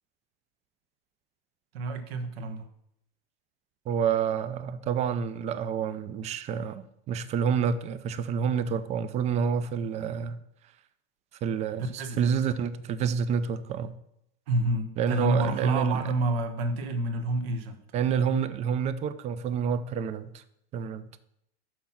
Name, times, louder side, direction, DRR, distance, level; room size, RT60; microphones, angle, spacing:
voice 1, 1.7-2.7 12.0-12.5 14.5-17.8, right 2 dB, 70° right, 7 dB, 1.3 m, -29 dB
voice 2, 3.9-10.4 11.4-13.9 15.0-16.0 17.9-20.4 20.7-21.2, right 7 dB, 20° right, 13 dB, 0.4 m, -28 dB
6.3 x 5.9 x 5.8 m, 0.78 s
supercardioid pair, 135°, 31 cm